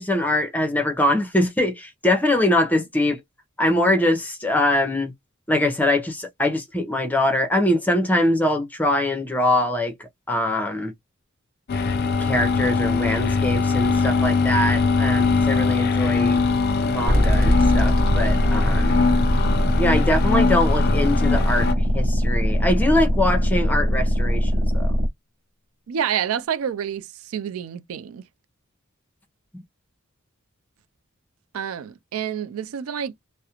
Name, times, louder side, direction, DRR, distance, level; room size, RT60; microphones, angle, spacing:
voice 1, 0.0-3.2 3.6-5.1 5.5-9.9 10.3-10.9 12.2-16.4 16.8-19.0 19.8-21.7 21.9-24.9, left 1 dB, 10° left, 0.6 m, -23 dB
sound 1, 11.7-21.7, left 4 dB, 50° left, 0.4 m, -22 dB
sound 2, 17.1-25.1, equal, 50° right, 1.0 m, -21 dB
voice 2, 25.9-28.2 31.5-33.1, right 8 dB, 85° right, 0.4 m, -28 dB
2.4 x 2.0 x 2.8 m
head